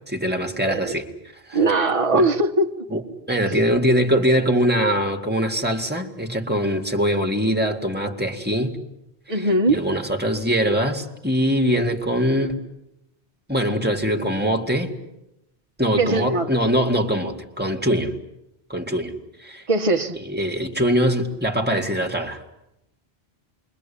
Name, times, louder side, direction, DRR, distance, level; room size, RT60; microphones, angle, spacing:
voice 1, 0.1-1.1 1.5-2.3 2.9-3.0 3.3-8.8 9.3-12.7 13.5-14.9 15.8-18.2 18.7-19.1 19.4-19.6 20.2-22.4, equal, 10° right, 2 dB, 2.1 m, -22 dB
voice 2, 0.6-0.9 1.5-2.7 9.3-9.8 16.0-16.5 19.7-20.2, right 2 dB, 30° right, 3 dB, 1.3 m, -20 dB
27.5 x 23.0 x 8.6 m, 0.88 s
omnidirectional pair, 1.1 m